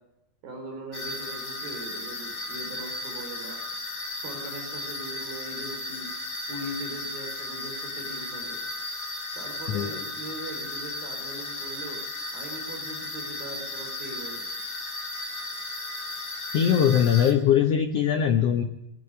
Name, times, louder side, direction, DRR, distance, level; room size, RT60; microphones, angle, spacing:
voice 1, 0.4-3.6 4.2-6.1 6.5-8.6 9.4-12.0 12.3-14.5, right 2 dB, 70° right, 3 dB, 6.2 m, -40 dB
sound 1, 0.9-17.3, left 2 dB, 15° left, 3.0 m, -35 dB
voice 2, 16.5-18.6, left 9 dB, 85° left, 7 dB, 1.3 m, -21 dB
22.5 x 11.5 x 9.8 m, 0.85 s
omnidirectional pair, 4.3 m